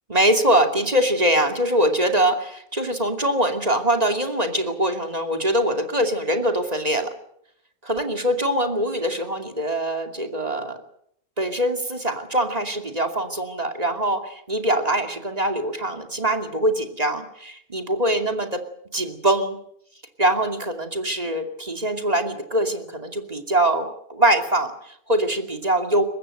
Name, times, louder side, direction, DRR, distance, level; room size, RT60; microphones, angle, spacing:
voice 1, 0.1-7.1 7.8-10.8 11.4-18.6 18.9-19.6 20.2-26.0, right 1 dB, 25° right, 5 dB, 2.7 m, -23 dB
23.5 x 20.0 x 7.9 m, 0.70 s
omnidirectional pair, 1.5 m